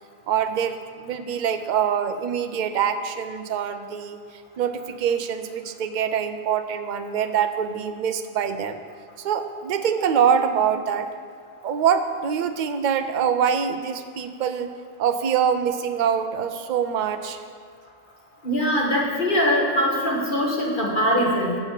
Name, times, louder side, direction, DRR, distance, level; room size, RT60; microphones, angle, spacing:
voice 1, 0.3-4.2 4.6-8.8 9.2-11.1 11.6-14.7 15.0-17.4, right 8 dB, 55° right, 9 dB, 0.5 m, -24 dB
voice 2, 18.4-21.6, equal, 40° left, -3 dB, 1.7 m, -22 dB
7.0 x 6.8 x 7.4 m, 2.1 s
omnidirectional pair, 1.3 m